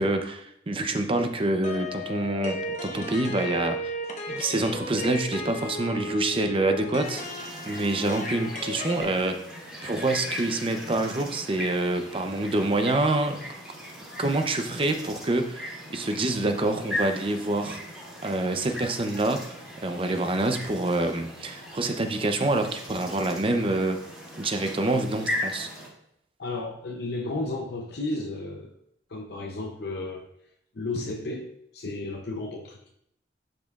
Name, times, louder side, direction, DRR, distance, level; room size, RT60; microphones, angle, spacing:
voice 1, 0.0-3.9 4.3-9.4 9.8-13.4 14.2-17.8 18.2-19.5 19.8-24.0 24.4-25.7, right 2 dB, 30° right, 6 dB, 0.7 m, -26 dB
sound 1, 1.6-9.0, left 1 dB, 45° left, 1.0 m, -35 dB
sound 2, 7.0-25.9, left 1 dB, 5° right, 2.7 m, -38 dB
voice 2, 26.4-28.7 29.1-30.3 30.7-32.9, left 2 dB, 65° left, 2 dB, 0.7 m, -33 dB
11.0 x 5.2 x 2.4 m, 0.76 s
head